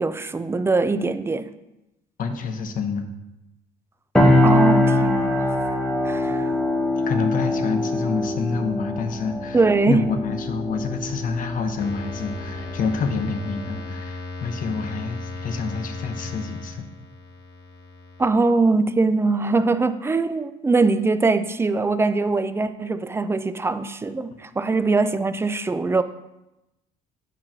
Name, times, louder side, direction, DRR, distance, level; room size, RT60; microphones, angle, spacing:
voice 1, 0.0-1.5 4.4-5.5 6.0-6.5 9.5-10.1 18.2-26.0, right 3 dB, 15° right, 0.3 m, -22 dB
voice 2, 2.2-3.1 6.2-6.3 7.0-9.6 9.9-16.9, left 4 dB, 55° left, 0.9 m, -27 dB
sound 1, 4.1-13.9, left 1 dB, 5° left, 0.9 m, -23 dB
sound 2, 11.8-18.2, left 3 dB, 75° left, 1.2 m, -36 dB
8.9 x 3.1 x 5.9 m
cardioid pair, 110°, 17 cm